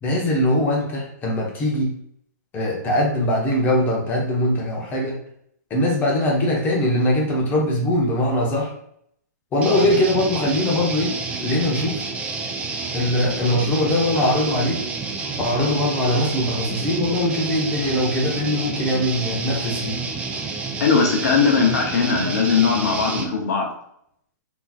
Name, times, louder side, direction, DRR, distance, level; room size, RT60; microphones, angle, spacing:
voice 1, 0.0-1.9 2.5-5.2 5.7-8.7 9.5-11.1 11.4-12.0 12.9-14.8 15.4-20.0, left 1 dB, 20° left, -2 dB, 0.8 m, -21 dB
sound 1, 9.6-23.3, right 4 dB, 10° right, 0.3 m, -29 dB
voice 2, 20.8-23.7, left 5 dB, 60° left, 0 dB, 0.8 m, -19 dB
3.7 x 2.8 x 2.4 m, 0.70 s
hypercardioid pair, 145°, 10 cm